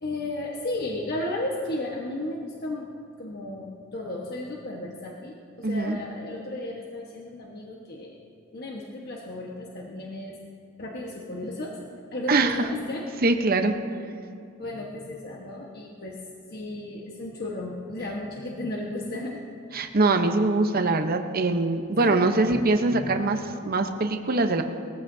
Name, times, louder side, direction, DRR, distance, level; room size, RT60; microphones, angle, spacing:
voice 1, 0.0-2.9 3.2-8.2 8.5-10.3 10.8-11.8 12.1-13.1 14.6-16.2 16.5-19.4 22.0-23.3, left 1 dB, 50° left, -2 dB, 1.3 m, -34 dB
voice 2, 5.6-6.0 12.3-12.6 13.2-13.7 19.7-24.6, right 3 dB, 45° right, 6 dB, 0.9 m, -23 dB
21.0 x 15.0 x 2.7 m, 2.5 s
head